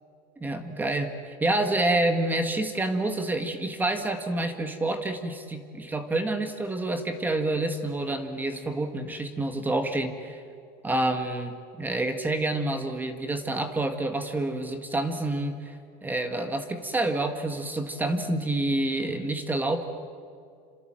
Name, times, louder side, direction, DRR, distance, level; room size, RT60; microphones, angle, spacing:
voice 1, 0.4-10.4 10.8-15.7 16.0-19.8, right 2 dB, 10° right, 8 dB, 1.6 m, -28 dB
27.5 x 27.0 x 7.6 m, 2.3 s
cardioid pair, 165°, 17 cm